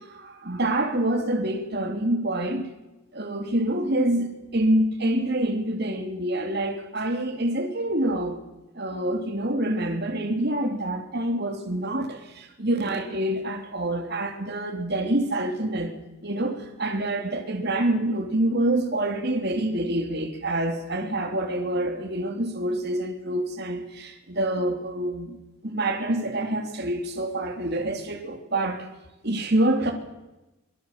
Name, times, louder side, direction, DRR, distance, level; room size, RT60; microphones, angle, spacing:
voice 1, 0.0-2.7 3.1-8.4 8.7-15.9 16.2-25.4 25.6-28.9 29.2-29.9, right 1 dB, 50° right, 3.4 m, -26 dB
25.5 x 22.0 x 7.6 m
head